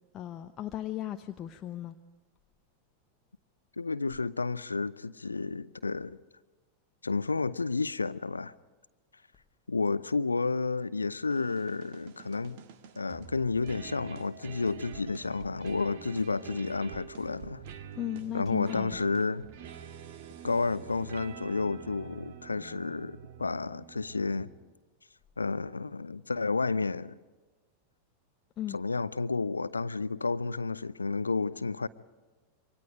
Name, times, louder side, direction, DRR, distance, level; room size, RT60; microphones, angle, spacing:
voice 1, 0.1-2.0 18.0-18.9 28.6-28.8, left 12 dB, 30° left, 0.9 m, -36 dB
voice 2, 3.8-6.2 7.0-8.5 9.7-12.6 13.0-17.6 18.3-19.5 20.4-24.5 25.4-27.2 28.7-31.9, left 4 dB, 80° left, 0.6 m, -31 dB
sound 1, 11.3-24.8, right 8 dB, 50° right, 1.7 m, -47 dB
27.5 x 25.0 x 5.0 m
figure-of-eight pair, 90°, 0 cm